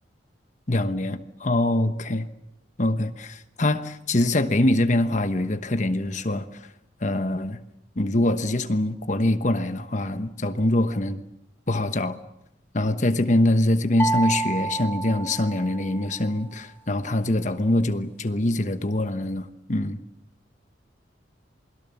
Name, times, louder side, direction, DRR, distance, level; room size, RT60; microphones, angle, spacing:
voice 1, 0.7-2.3 2.8-6.6 7.0-7.6 8.0-11.2 11.7-12.2 12.7-20.0, left 1 dB, 40° left, 9 dB, 1.1 m, -24 dB
sound 1, 14.0-16.1, right 3 dB, 10° left, 0.9 m, -29 dB
28.0 x 21.5 x 7.1 m, 0.81 s
head